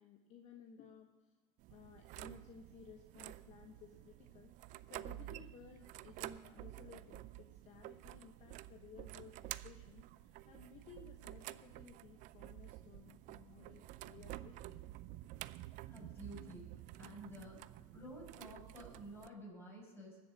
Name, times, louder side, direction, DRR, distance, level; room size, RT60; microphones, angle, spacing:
voice 1, 0.0-1.3 1.7-14.8, left 6 dB, 40° left, 4 dB, 1.2 m, -58 dB
sound 1, 1.6-19.3, right 16 dB, 45° right, 0.5 m, -51 dB
voice 2, 15.9-16.7 17.0-17.6 17.9-20.2, equal, 15° left, -2 dB, 5.6 m, -51 dB
20.0 x 7.6 x 6.1 m, 1.2 s
hypercardioid pair, 105°, 18 cm